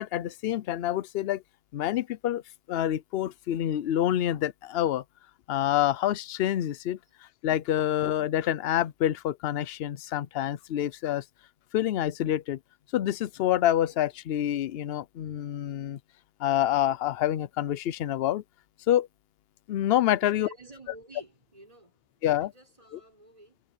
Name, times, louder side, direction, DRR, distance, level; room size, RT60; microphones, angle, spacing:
voice 1, 0.0-1.4 1.7-2.4 2.7-5.0 5.5-7.0 7.4-11.2 11.7-12.6 12.9-16.0 16.4-18.4 18.9-19.1 19.7-20.5 22.2-22.5 22.9-23.0, left 12 dB, 75° left, 0.8 m, -27 dB
voice 2, 20.2-23.6, right 2 dB, 35° right, 4.6 m, -51 dB
omnidirectional pair, 1.1 m